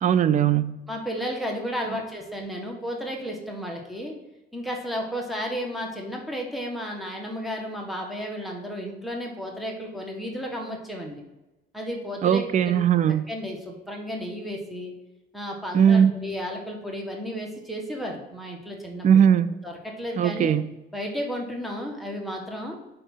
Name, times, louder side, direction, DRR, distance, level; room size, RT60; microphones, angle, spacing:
voice 1, 0.0-0.8 12.2-13.2 15.7-16.2 19.0-19.5 20.2-20.6, right 8 dB, 40° right, 13 dB, 0.4 m, -19 dB
voice 2, 0.9-4.1 4.5-11.2 11.7-12.4 13.3-14.9 15.3-19.2 19.6-20.5 20.9-22.8, equal, ahead, 0 dB, 1.6 m, -33 dB
5.5 x 4.2 x 5.5 m, 0.99 s
cardioid pair, 90°, 20 cm